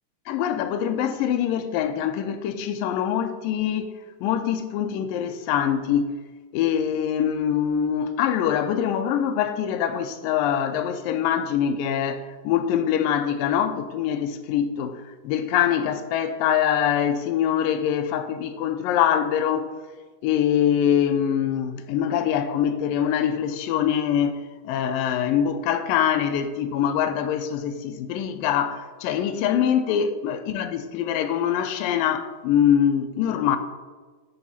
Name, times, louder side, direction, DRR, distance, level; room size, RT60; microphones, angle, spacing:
voice 1, 0.3-3.9 4.2-6.2 6.5-19.7 20.2-33.6, left 9 dB, 85° left, 2.4 m, -24 dB
13.0 x 7.4 x 4.2 m
omnidirectional pair, 4.0 m